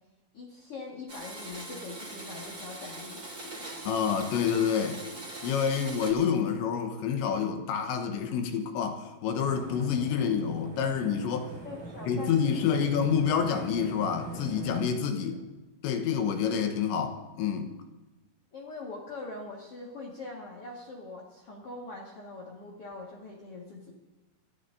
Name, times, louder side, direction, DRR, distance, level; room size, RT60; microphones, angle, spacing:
voice 1, 0.3-3.8 11.6-12.7 18.5-23.9, left 3 dB, 55° left, -3 dB, 1.6 m, -43 dB
Domestic sounds home sounds, 1.1-6.1, right 2 dB, 20° right, 3.0 m, -42 dB
voice 2, 3.9-5.0 5.4-11.5 12.1-15.4 15.8-17.7, left 7 dB, 75° left, 5 dB, 3.2 m, -28 dB
sound 1, 9.4-15.0, right 1 dB, 45° right, 2.9 m, -42 dB
27.5 x 14.0 x 2.7 m, 1.1 s
omnidirectional pair, 5.8 m